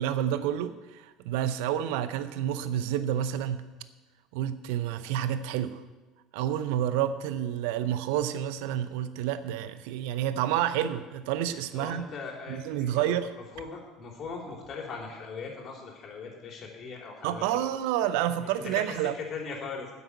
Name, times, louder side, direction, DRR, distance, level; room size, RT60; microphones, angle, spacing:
voice 1, 0.0-3.7 4.3-5.8 6.3-12.1 12.5-13.3 17.2-19.1, right 11 dB, 65° right, 13 dB, 0.6 m, -29 dB
voice 2, 11.7-12.6 13.0-13.2 13.6-17.7 18.6-19.9, left 4 dB, 45° left, 0 dB, 3.5 m, -39 dB
9.8 x 8.3 x 8.1 m, 1.2 s
figure-of-eight pair, 65°, 0 cm